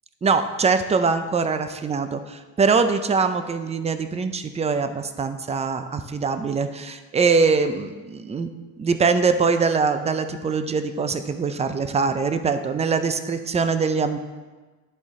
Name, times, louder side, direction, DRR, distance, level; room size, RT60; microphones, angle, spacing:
voice 1, 0.2-8.5 8.8-14.2, right 5 dB, 15° right, 9 dB, 0.4 m, -23 dB
11.5 x 3.8 x 3.6 m, 1.3 s
supercardioid pair, 85°, 47 cm